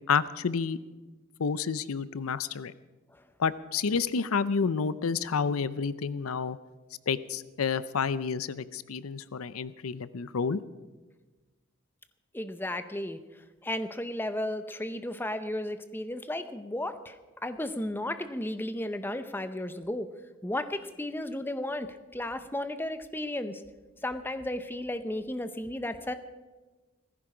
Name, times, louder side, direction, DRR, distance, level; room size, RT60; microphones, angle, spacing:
voice 1, 0.1-0.8 1.4-2.7 3.4-6.6 7.1-10.6, left 5 dB, 85° left, 16 dB, 0.6 m, -29 dB
voice 2, 12.3-13.2 13.6-17.1 17.4-20.1 20.4-21.9 22.1-23.6 24.0-26.1, left 1 dB, 10° left, 10 dB, 0.7 m, -34 dB
17.0 x 15.0 x 5.0 m, 1.2 s
head